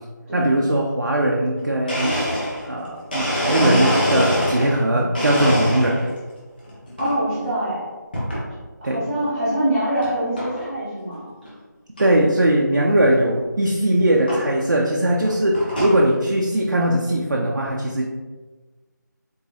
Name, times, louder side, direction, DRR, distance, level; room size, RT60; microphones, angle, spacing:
voice 1, 0.3-2.2 2.6-6.0 8.8-9.1 12.0-18.1, right 1 dB, 60° right, -2 dB, 0.5 m, -20 dB
Domestic sounds home sounds, 1.5-1.6 1.9-4.8 5.1-6.2 6.6-7.1 8.1-8.5 9.0-9.1 10.0-10.1 10.4-10.7 11.1-11.2 11.4-11.5 12.0-12.1 13.4-13.5 14.3-14.4 15.1-16.0, equal, 30° left, 0.9 m, -24 dB
voice 2, 7.0-7.9 8.8-11.3, right 1 dB, 15° right, -10 dB, 1.4 m, -24 dB
3.8 x 2.9 x 2.6 m, 1.3 s
figure-of-eight pair, 170°, 11 cm